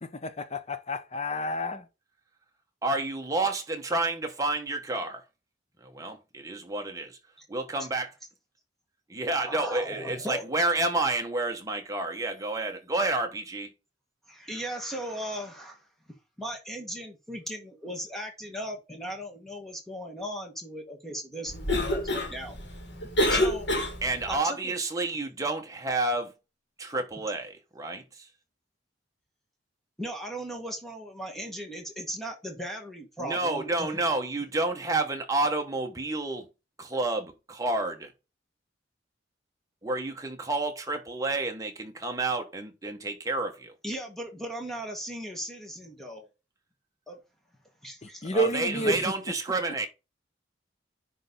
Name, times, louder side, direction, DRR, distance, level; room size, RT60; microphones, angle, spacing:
voice 1, 0.0-1.9 48.0-49.1, right 1 dB, 35° left, 0.7 m, -30 dB
voice 2, 2.8-5.2 5.8-7.2 7.5-8.1 9.1-13.7 24.0-26.3 26.8-28.3 33.2-36.5 36.8-38.1 39.8-43.7 48.3-49.9, right 2 dB, 20° right, 1.1 m, -30 dB
voice 3, 9.4-10.4 14.3-15.9 16.4-22.6 23.3-23.7 24.3-24.7 30.0-33.9 43.8-46.3 47.1-47.2 47.8-48.3 48.8-49.0, equal, ahead, 1.6 m, -37 dB
Cough, 21.5-24.3, left 1 dB, 70° left, 2.2 m, -28 dB
10.0 x 3.4 x 4.0 m
head